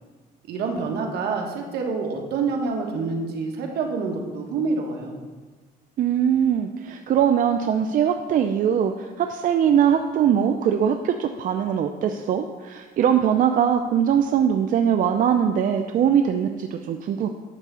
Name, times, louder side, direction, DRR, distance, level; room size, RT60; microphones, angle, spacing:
voice 1, 0.5-5.1, right 4 dB, 75° right, 2 dB, 1.5 m, -27 dB
voice 2, 6.0-17.3, right 8 dB, 55° right, 6 dB, 0.5 m, -21 dB
11.0 x 3.6 x 6.9 m, 1.4 s
cardioid pair, 110°, 17 cm